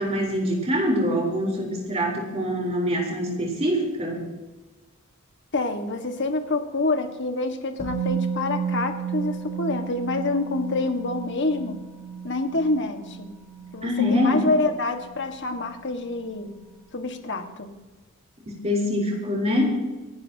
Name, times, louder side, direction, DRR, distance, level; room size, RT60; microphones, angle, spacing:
voice 1, 0.0-4.3 13.8-14.5 18.5-19.8, equal, 30° right, -1 dB, 4.1 m, -24 dB
voice 2, 5.5-11.8 12.2-13.3 13.7-16.5 16.9-17.7, left 2 dB, 55° left, 5 dB, 1.8 m, -27 dB
Musical instrument, 7.8-15.7 16.0-16.1, right 6 dB, 30° left, 4.4 m, -33 dB
28.0 x 11.5 x 3.0 m, 1.2 s
head